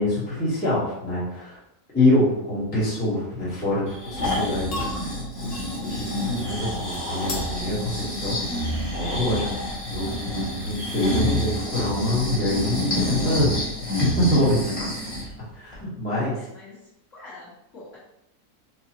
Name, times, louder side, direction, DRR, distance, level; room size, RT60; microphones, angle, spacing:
voice 1, 0.0-1.6 1.9-4.8 5.7-8.4 8.9-9.5 9.9-13.6 14.0-14.9 15.5-16.4, left 1 dB, 5° left, -9 dB, 1.0 m, -25 dB
Breathing, 3.9-15.3 15.7-15.8, left 1 dB, 30° left, 1.4 m, -28 dB
sound 1, 4.3-10.7, left 2 dB, 80° left, 1.4 m, -40 dB
voice 2, 16.4-18.0, left 2 dB, 55° left, -9 dB, 1.7 m, -45 dB
4.7 x 2.3 x 2.9 m, 0.83 s
omnidirectional pair, 1.6 m